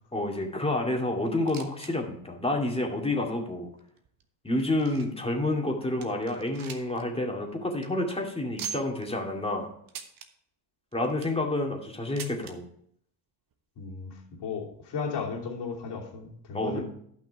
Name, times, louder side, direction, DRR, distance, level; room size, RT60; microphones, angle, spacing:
voice 1, 0.1-3.7 4.4-9.7 10.9-12.6 16.5-16.8, left 2 dB, 10° left, 1 dB, 2.3 m, -29 dB
sound 1, 1.2-1.9 2.2-2.3 3.0-3.1 3.8-5.3 5.7-5.8 6.0-7.0 7.3-7.4 7.7-7.9 8.6-9.1 9.9-10.3 10.9-11.4 12.2-12.5 13.5-13.6 13.8-13.9 14.7-14.8, right 7 dB, 45° right, 1.3 m, -41 dB
voice 2, 13.8-16.8, left 5 dB, 55° left, -1 dB, 3.0 m, -35 dB
11.0 x 5.9 x 4.8 m, 0.67 s
hypercardioid pair, 65°, 49 cm